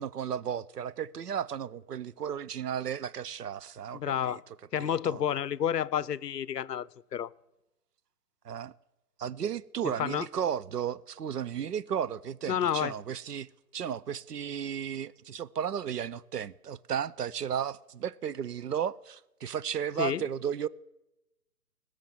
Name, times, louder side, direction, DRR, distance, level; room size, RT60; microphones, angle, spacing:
voice 1, 0.0-4.4 4.8-5.2 8.4-8.7 9.2-20.7, right 8 dB, 85° right, 0.7 m, -34 dB
voice 2, 3.9-4.4 4.7-7.3 10.0-10.3 12.5-12.9 20.0-20.2, left 9 dB, 90° left, 0.6 m, -30 dB
19.5 x 6.6 x 7.2 m
figure-of-eight pair, 140°, 47 cm